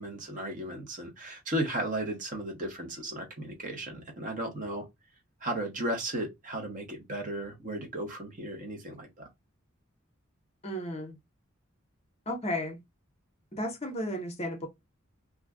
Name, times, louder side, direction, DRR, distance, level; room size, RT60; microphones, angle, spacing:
voice 1, 0.0-4.9 5.4-9.3, right 1 dB, 40° right, 0.9 m, -35 dB
voice 2, 10.6-11.2 12.3-12.8 13.5-14.7, equal, 30° left, 0.7 m, -33 dB
2.5 x 2.2 x 3.4 m
head